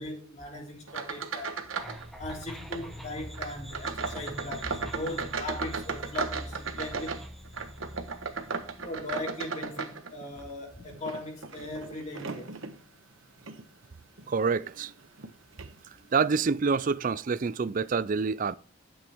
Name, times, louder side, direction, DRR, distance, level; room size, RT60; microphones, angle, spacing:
voice 1, 0.0-1.6 2.2-7.2 8.5-12.6 14.2-14.3, left 2 dB, 35° left, 3.1 m, -39 dB
sound 1, 0.9-2.0 2.3-2.9 3.3-10.4 10.9-12.8 13.4-13.6 14.2-14.3 15.2-15.3 15.6-15.7, right 5 dB, 75° right, 1.2 m, -36 dB
sound 2, 1.8-9.0, equal, ahead, 1.3 m, -44 dB
voice 2, 14.3-14.9 16.1-18.6, right 5 dB, 40° right, 0.4 m, -27 dB
12.0 x 7.9 x 3.5 m
head